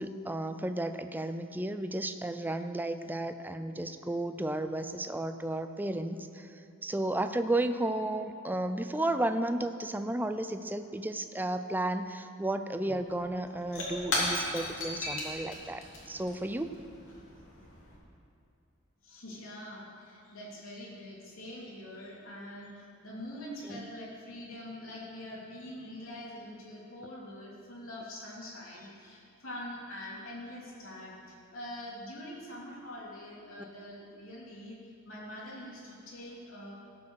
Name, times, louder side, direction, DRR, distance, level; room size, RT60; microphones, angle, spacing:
voice 1, 0.0-6.5 6.8-16.7 23.7-23.9, right 1 dB, 10° right, 9 dB, 0.5 m, -33 dB
Shatter / Crushing, 12.8-12.9 13.1-18.0, left 2 dB, 70° left, 2.8 m, -36 dB
voice 2, 19.0-22.7 23.0-34.8 35.0-36.7, left 1 dB, 90° left, -4 dB, 3.1 m, -44 dB
17.0 x 6.1 x 6.4 m, 2.6 s
head